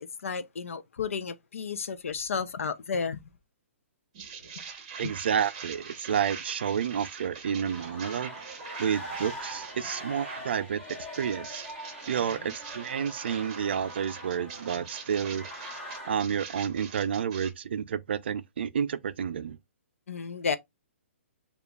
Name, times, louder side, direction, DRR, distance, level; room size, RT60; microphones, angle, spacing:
voice 1, 0.0-3.2 4.6-4.7 5.0-5.1 12.3-12.5 20.1-20.6, left 5 dB, 75° left, 0.5 m, -33 dB
sound 1, 4.1-10.5 10.9-17.5, right 6 dB, 30° right, 0.8 m, -44 dB
voice 2, 5.0-8.3 8.8-10.8 11.2-11.6 12.1-15.5 16.1-19.6, right 8 dB, 50° right, 0.4 m, -30 dB
sound 2, 7.6-16.2, equal, 10° left, 0.9 m, -42 dB
6.9 x 2.4 x 2.3 m
hypercardioid pair, 175°, 7 cm